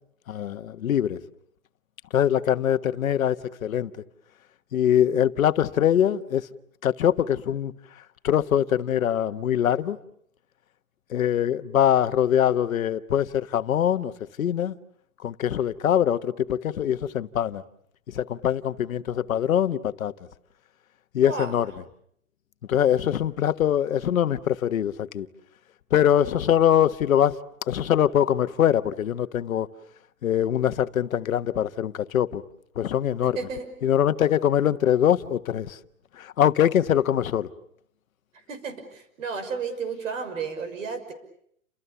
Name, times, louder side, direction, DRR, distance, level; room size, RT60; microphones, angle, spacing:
voice 1, 0.3-1.2 2.1-3.9 4.7-6.5 6.8-7.7 8.2-10.0 11.1-14.1 14.4-14.8 15.2-17.6 18.1-20.1 21.1-21.7 22.7-25.3 25.9-27.4 27.7-29.7 30.2-32.4 32.8-33.4 33.8-35.8 36.2-37.5, left 10 dB, 80° left, 1.4 m, -23 dB
voice 2, 33.2-33.7 38.5-41.1, right 5 dB, 65° right, 6.4 m, -33 dB
30.0 x 27.5 x 7.0 m
hypercardioid pair, 155°, 41 cm